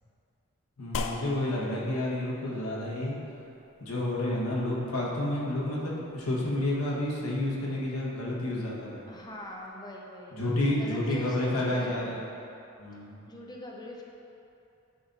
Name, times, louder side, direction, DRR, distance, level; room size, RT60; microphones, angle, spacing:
voice 1, 0.8-3.2 3.8-9.0 10.3-12.3 12.8-13.2, left 1 dB, 90° left, -5 dB, 1.4 m, -30 dB
sound 1, 0.9-9.7, left 3 dB, 65° left, 0.4 m, -44 dB
voice 2, 9.1-10.4 10.8-12.1 12.9-14.0, left 1 dB, 20° left, -1 dB, 0.7 m, -43 dB
10.0 x 4.1 x 4.0 m, 2.7 s
head